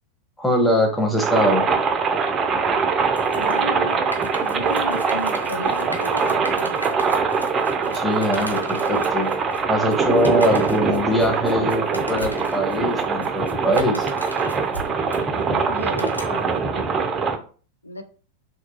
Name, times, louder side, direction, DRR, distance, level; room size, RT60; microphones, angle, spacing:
voice 1, 0.4-1.7 7.9-9.3 9.7-14.1, equal, 5° left, 1 dB, 0.7 m, -22 dB
sound 1, 1.2-17.4, right 5 dB, 25° right, 0.4 m, -23 dB
sound 2, 3.2-16.6, right 1 dB, 90° right, 0.5 m, -37 dB
voice 2, 3.3-4.0 4.4-7.0 15.7-17.1 17.8-18.0, left 1 dB, 85° left, 7 dB, 0.3 m, -33 dB
2.8 x 2.3 x 2.7 m, 0.40 s
figure-of-eight pair, 90°, 0 cm